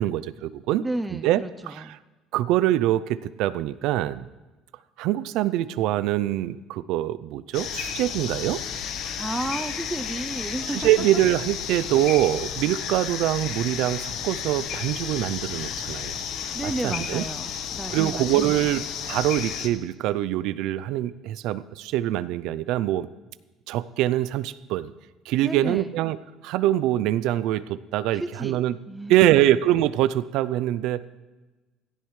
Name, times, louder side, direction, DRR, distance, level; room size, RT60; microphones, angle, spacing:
voice 1, 0.0-0.8 1.1-2.0 2.3-4.3 5.0-8.6 10.7-16.2 16.6-17.2 17.9-23.1 23.7-24.9 25.3-26.2 26.4-28.7 29.1-31.1, right 13 dB, 75° right, 16 dB, 0.4 m, -24 dB
voice 2, 0.8-2.0 9.2-10.9 16.5-18.6 25.4-25.9 28.1-29.3, right 2 dB, 10° right, 8 dB, 0.5 m, -32 dB
sound 1, 7.5-19.7, left 8 dB, 65° left, 1.1 m, -32 dB
16.0 x 14.5 x 3.2 m, 1.2 s
supercardioid pair, 100°, 0 cm